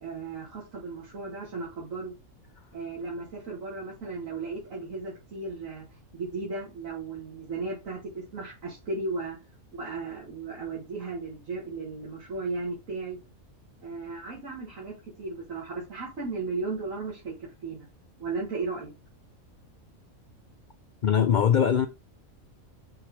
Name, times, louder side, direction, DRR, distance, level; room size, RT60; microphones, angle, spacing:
voice 1, 0.0-2.1 2.7-5.9 6.1-9.4 9.7-13.2 13.8-17.9 18.2-18.9, right 3 dB, 70° right, 2.1 m, -35 dB
voice 2, 21.0-21.9, left 8 dB, 70° left, 0.4 m, -21 dB
6.3 x 3.7 x 4.6 m
omnidirectional pair, 1.5 m